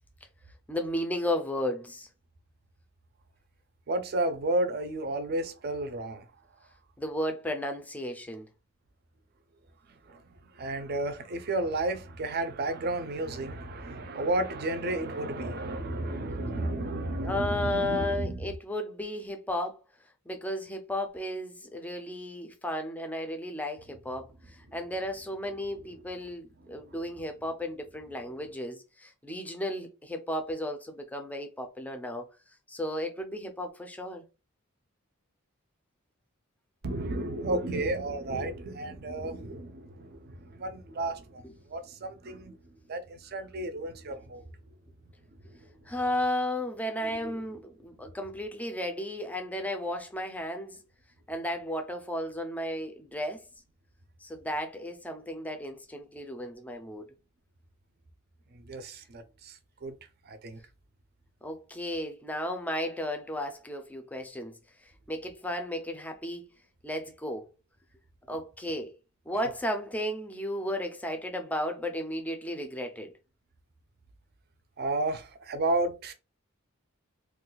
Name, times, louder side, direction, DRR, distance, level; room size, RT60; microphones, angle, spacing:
voice 1, 0.7-2.1 7.0-8.5 17.2-19.8 20.3-32.3 32.7-34.2 41.4-41.5 45.9-50.8 51.3-53.4 54.2-57.1 61.4-64.5 64.8-66.5 66.8-67.5 68.3-68.9 69.3-73.1, left 1 dB, 5° left, 0.4 m, -34 dB
voice 2, 3.9-6.3 10.1-10.2 10.6-18.4 26.6-26.7 36.8-42.6 42.9-44.4 45.5-45.6 47.2-47.4 58.5-59.9 60.3-60.6 74.8-76.1, right 2 dB, 50° right, 0.5 m, -32 dB
2.4 x 2.3 x 3.8 m
head